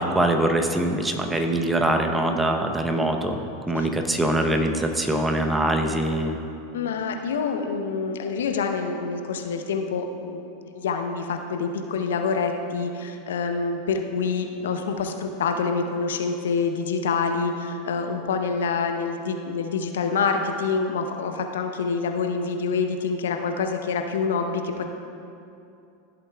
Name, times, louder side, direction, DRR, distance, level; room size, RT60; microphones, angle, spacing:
voice 1, 0.0-3.4 3.7-6.4, right 1 dB, 10° right, 4 dB, 0.8 m, -23 dB
voice 2, 6.7-10.4 10.7-24.8, left 5 dB, 75° left, 5 dB, 0.7 m, -26 dB
15.0 x 7.9 x 2.3 m, 2.6 s
hypercardioid pair, 90°, 0 cm